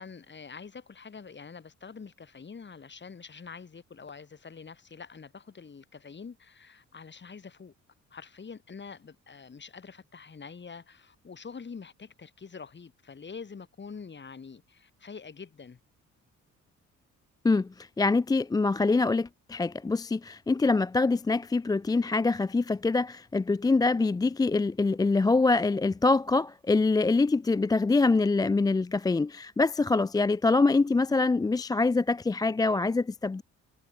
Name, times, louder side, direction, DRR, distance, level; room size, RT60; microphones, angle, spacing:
voice 1, 0.0-7.7 8.1-15.8, left 5 dB, 35° left, 7.0 m, -45 dB
voice 2, 17.4-33.4, left 3 dB, 15° left, 0.4 m, -25 dB
cardioid pair, 90°, 30 cm